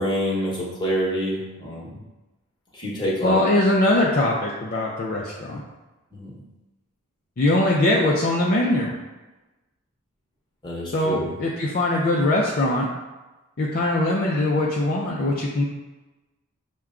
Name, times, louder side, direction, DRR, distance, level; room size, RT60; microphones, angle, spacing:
voice 1, 0.0-2.0 2.7-3.4 6.1-6.3 10.6-11.3, equal, 20° left, -5 dB, 1.0 m, -27 dB
voice 2, 3.2-5.6 7.4-8.9 10.9-12.9 13.6-15.6, left 1 dB, 45° left, -3 dB, 0.5 m, -21 dB
5.8 x 2.2 x 3.6 m, 1.1 s
head